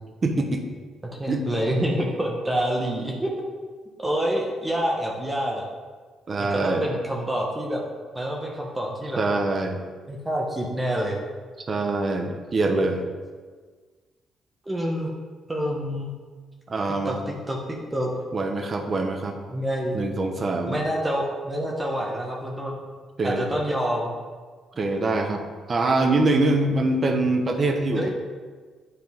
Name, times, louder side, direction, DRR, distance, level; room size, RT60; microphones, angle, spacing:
voice 1, 0.2-0.6 1.3-1.5 6.3-6.9 9.2-9.8 11.7-13.1 16.7-17.2 18.3-19.4 19.9-20.8 23.2-23.5 24.8-25.4 25.7-28.1, right 2 dB, 40° right, 5 dB, 0.9 m, -24 dB
voice 2, 1.2-3.3 4.0-5.7 6.4-7.8 8.1-9.2 10.1-11.2 14.7-15.1 15.5-16.1 17.0-18.1 19.5-20.0 20.7-22.8 23.2-24.2 27.9-28.1, equal, 15° right, -1 dB, 1.0 m, -27 dB
9.5 x 4.2 x 3.6 m, 1.5 s
cardioid pair, 90°, 0 cm